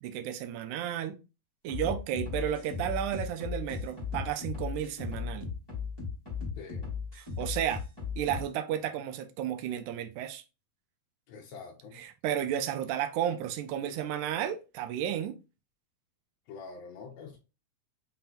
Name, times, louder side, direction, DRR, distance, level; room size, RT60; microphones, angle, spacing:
voice 1, 0.0-1.2 1.6-5.5 7.1-7.8 8.2-10.4 11.9-15.4, right 10 dB, 80° right, 1.9 m, -33 dB
sound 1, 1.7-8.4, left 5 dB, 10° left, 1.5 m, -36 dB
voice 2, 6.6-6.9 11.3-12.0 16.5-17.4, left 5 dB, 75° left, 1.6 m, -45 dB
5.7 x 3.7 x 2.5 m
omnidirectional pair, 3.8 m